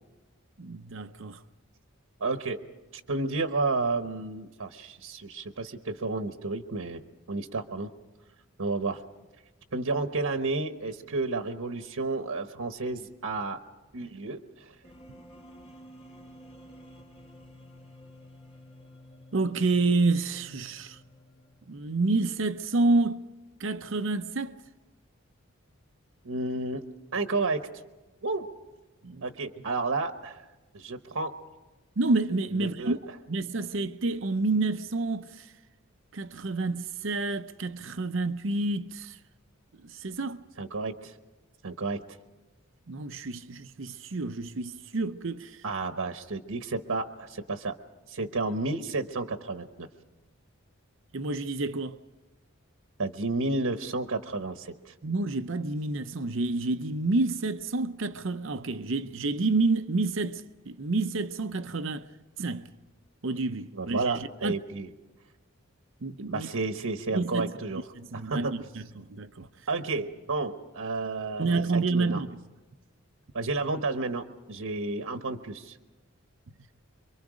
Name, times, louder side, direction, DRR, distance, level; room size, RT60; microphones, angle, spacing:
voice 1, 0.6-1.4 19.3-21.0 21.7-23.2 23.6-24.6 29.0-29.2 32.0-33.0 33.3-35.5 36.1-39.2 39.8-40.4 42.9-45.6 51.1-52.0 55.0-62.1 62.4-62.7 63.2-64.5 66.0-66.5 67.1-67.5 68.0-69.5 71.4-72.4, right 3 dB, 60° right, 0.7 m, -29 dB
voice 2, 2.2-2.6 2.9-7.0 7.3-7.9 8.6-9.0 9.7-13.6 13.9-14.7 26.2-26.8 27.1-27.6 28.2-28.5 29.2-30.4 30.7-31.3 32.5-33.0 40.6-41.1 41.6-42.0 45.6-47.8 48.1-49.9 53.0-54.9 63.7-64.9 66.3-67.8 68.1-68.5 69.7-72.2 73.3-75.8, right 3 dB, 85° right, 1.1 m, -31 dB
sound 1, 14.8-21.9, equal, 30° left, 1.9 m, -51 dB
26.5 x 24.0 x 5.1 m
head